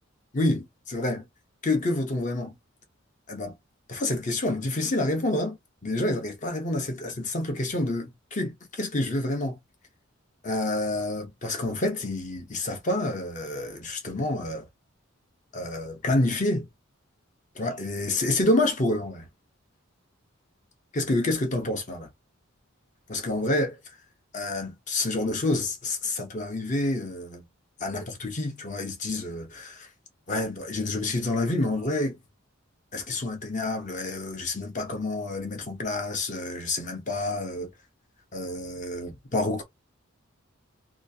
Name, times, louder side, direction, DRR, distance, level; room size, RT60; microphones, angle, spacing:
voice 1, 0.3-1.2 1.6-2.5 3.3-3.5 3.9-5.6 5.8-9.6 10.4-14.7 15.5-16.7 17.5-19.3 20.9-22.1 23.1-23.8 24.3-27.4 27.8-29.9 30.3-32.2 32.9-37.7 38.3-39.6, left 2 dB, 35° left, 0.8 m, -28 dB
2.9 x 2.4 x 2.7 m
head